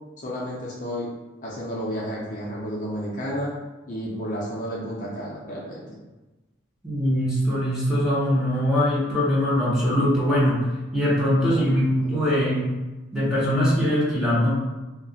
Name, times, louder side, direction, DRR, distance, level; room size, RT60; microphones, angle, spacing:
voice 1, 0.2-1.1 1.4-3.5 3.9-6.0 11.4-11.7 12.0-12.4, equal, 40° left, -5 dB, 0.5 m, -32 dB
voice 2, 6.8-12.7 13.1-14.5, equal, 5° right, -9 dB, 0.7 m, -22 dB
2.4 x 2.1 x 3.7 m, 1.1 s
head